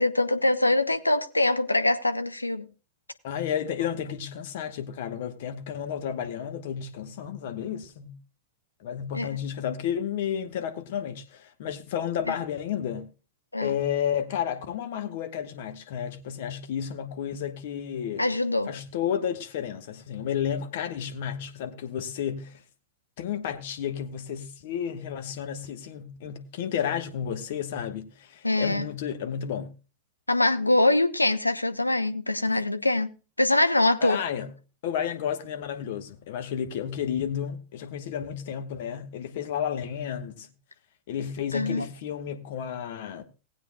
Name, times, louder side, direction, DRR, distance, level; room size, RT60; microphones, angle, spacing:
voice 1, 0.0-2.7 9.1-9.3 12.3-12.4 13.5-13.7 18.2-18.7 28.4-28.9 30.3-33.1 33.4-34.2 41.5-41.9, left 2 dB, 85° left, 0.7 m, -23 dB
voice 2, 3.2-8.1 8.8-13.1 13.6-18.3 18.7-22.6 23.2-29.7 32.5-32.6 34.0-34.5 34.8-40.5 41.1-43.2, left 9 dB, 55° left, 1.2 m, -32 dB
18.5 x 8.7 x 2.3 m
figure-of-eight pair, 90°, 0 cm